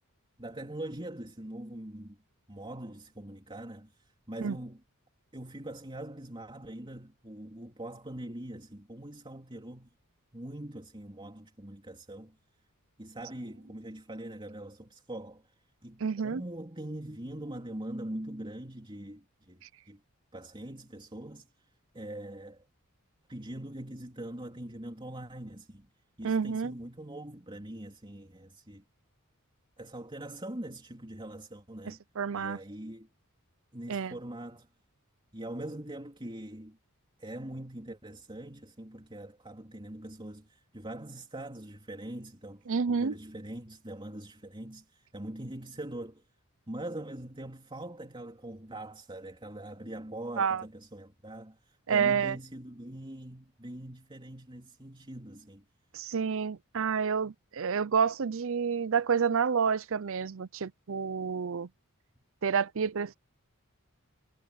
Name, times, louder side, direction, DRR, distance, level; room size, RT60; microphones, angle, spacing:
voice 1, 0.4-2.2 2.5-4.8 5.3-9.9 10.3-12.4 13.0-15.5 15.8-20.0 20.3-21.7 21.9-22.6 23.3-25.9 26.2-28.8 29.8-32.0 32.3-33.1 33.7-34.7 35.3-36.8 37.2-46.2 46.7-55.6, right 1 dB, 25° right, 3.5 m, -42 dB
voice 2, 16.0-16.4 26.2-26.7 31.9-32.6 33.9-34.1 42.7-43.2 50.4-50.6 51.9-52.4 55.9-61.7 62.4-63.2, right 6 dB, 65° right, 0.6 m, -29 dB
head